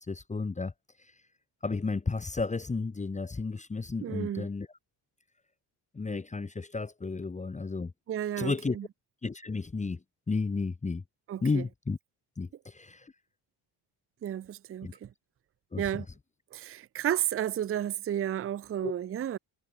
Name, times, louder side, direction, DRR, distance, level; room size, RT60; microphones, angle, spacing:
voice 1, 0.1-0.7 1.6-4.7 5.9-7.9 8.4-8.8 9.2-10.0 10.3-11.0 11.4-12.0 12.4-13.1 14.8-14.9 15.7-15.9 18.8-18.9, left 4 dB, 15° left, 1.3 m, -32 dB
voice 2, 4.0-4.5 8.1-8.9 11.3-11.6 14.2-15.1 15.8-16.1 16.5-19.4, right 11 dB, 35° right, 0.6 m, -32 dB
cardioid pair, 125°, 41 cm